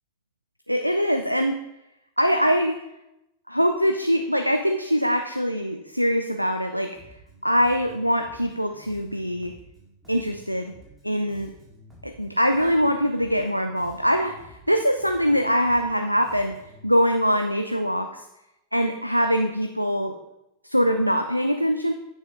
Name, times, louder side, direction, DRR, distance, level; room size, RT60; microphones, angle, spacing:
voice 1, 0.7-1.6 2.2-2.8 3.5-6.9 7.4-9.5 10.1-10.7 11.0-11.5 12.0-16.6 16.8-18.3 18.7-20.2 20.6-21.9, equal, 90° right, 6 dB, 0.4 m, -23 dB
Bass guitar, 7.0-16.8, equal, 5° right, 3.1 m, -51 dB
10.0 x 6.5 x 3.4 m, 0.89 s
figure-of-eight pair, 90°, 0 cm